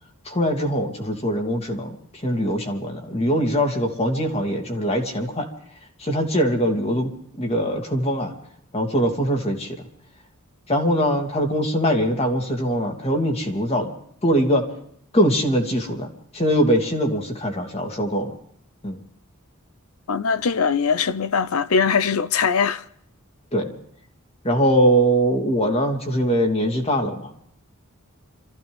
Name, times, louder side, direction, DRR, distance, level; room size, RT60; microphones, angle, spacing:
voice 1, 0.2-5.5 6.0-7.1 7.4-8.3 8.7-9.8 10.7-13.9 14.2-14.6 15.1-16.1 16.3-18.3 18.8-19.0 23.5-23.7 24.4-27.4, equal, 30° left, 2.6 m, -22 dB
voice 2, 20.1-22.8, left 6 dB, 75° left, 0.7 m, -21 dB
27.0 x 15.0 x 3.5 m
head